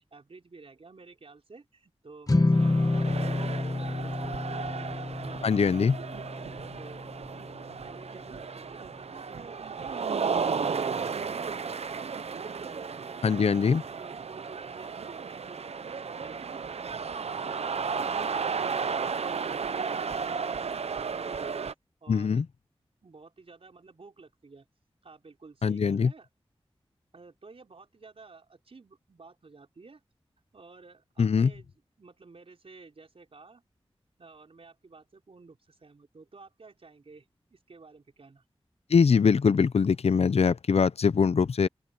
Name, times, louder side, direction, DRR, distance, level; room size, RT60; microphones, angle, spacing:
voice 1, 0.1-6.3 6.5-7.0 7.9-12.3 12.6-21.7 22.0-22.4 23.0-24.7 25.0-26.3 27.1-30.0 30.5-33.6 34.2-38.4, right 4 dB, 65° right, 4.6 m, -52 dB
sound 1, 2.3-8.7, left 2 dB, 35° left, 1.5 m, -29 dB
sound 2, 2.5-21.7, right 5 dB, 85° right, 0.7 m, -34 dB
voice 2, 5.4-5.9 13.2-13.8 22.1-22.4 25.6-26.1 31.2-31.5 38.9-41.7, left 6 dB, 75° left, 0.6 m, -22 dB
open air
wide cardioid pair, 70°, 10 cm